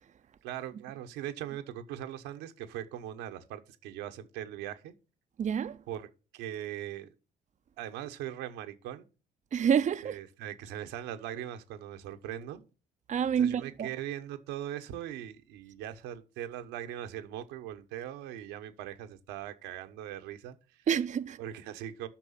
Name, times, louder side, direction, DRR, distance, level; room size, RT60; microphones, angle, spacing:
voice 1, 0.4-5.0 5.9-7.1 7.8-9.1 10.0-12.7 13.4-20.9 21.4-22.1, right 11 dB, 85° right, 1.1 m, -40 dB
voice 2, 5.4-5.8 9.5-10.2 13.1-13.9 20.9-21.4, right 8 dB, 45° right, 0.6 m, -28 dB
8.8 x 6.2 x 5.7 m
supercardioid pair, 60°, 18 cm